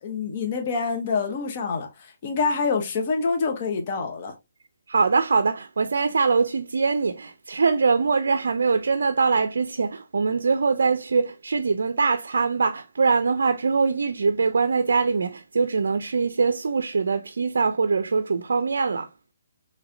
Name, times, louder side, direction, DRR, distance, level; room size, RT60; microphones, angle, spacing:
voice 1, 0.0-4.3, left 4 dB, 40° left, 0.9 m, -26 dB
voice 2, 4.9-19.1, right 4 dB, 75° right, 0.4 m, -23 dB
4.1 x 3.1 x 2.6 m
hypercardioid pair, 150°, 0 cm